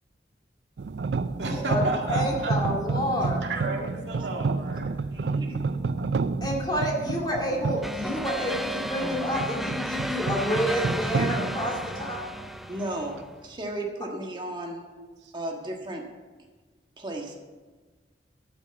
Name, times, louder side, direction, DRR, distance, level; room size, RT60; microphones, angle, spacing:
sound 1, 0.8-12.7, right 4 dB, 65° right, 0.4 m, -30 dB
voice 1, 1.4-2.5 3.4-6.0 15.0-15.3, right 2 dB, 85° right, 1 dB, 1.9 m, -34 dB
voice 2, 2.1-3.4 6.4-12.3, equal, 25° left, -2 dB, 2.1 m, -29 dB
voice 3, 5.2-5.6 12.7-14.8 15.3-16.1 17.0-17.3, right 1 dB, 25° right, 1 dB, 1.5 m, -35 dB
sound 2, 7.8-13.3, equal, ahead, 0.4 m, -33 dB
12.0 x 6.1 x 7.0 m, 1.4 s
head